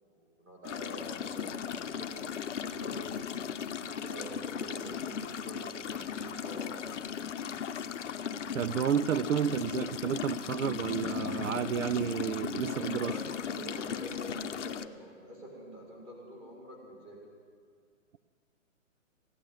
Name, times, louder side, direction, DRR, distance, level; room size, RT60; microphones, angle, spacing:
voice 1, 0.0-7.4 12.6-17.2, right 1 dB, 15° right, 2.1 m, -46 dB
sound 1, 0.6-14.9, left 8 dB, 60° left, 0.7 m, -37 dB
voice 2, 8.5-13.1, right 9 dB, 75° right, 0.5 m, -31 dB
16.0 x 9.0 x 9.0 m
hypercardioid pair, 175°, 40 cm